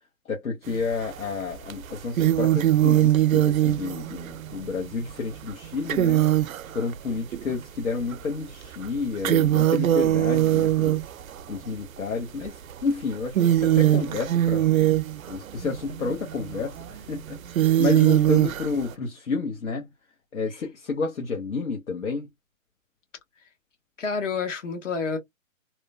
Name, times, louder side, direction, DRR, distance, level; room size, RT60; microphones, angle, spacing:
voice 1, 0.2-6.3 6.7-11.0 11.5-14.7 15.3-19.9 20.3-22.3, left 4 dB, 85° left, 1.0 m, -30 dB
sound 1, 0.7-1.2 1.7-7.5 8.1-8.2 8.6-11.6 12.4-12.7 13.1-18.9, right 13 dB, 80° right, 0.5 m, -22 dB
voice 2, 17.8-18.2 24.0-25.2, left 5 dB, 65° left, 1.1 m, -29 dB
3.0 x 2.1 x 2.3 m
hypercardioid pair, 140°, 40 cm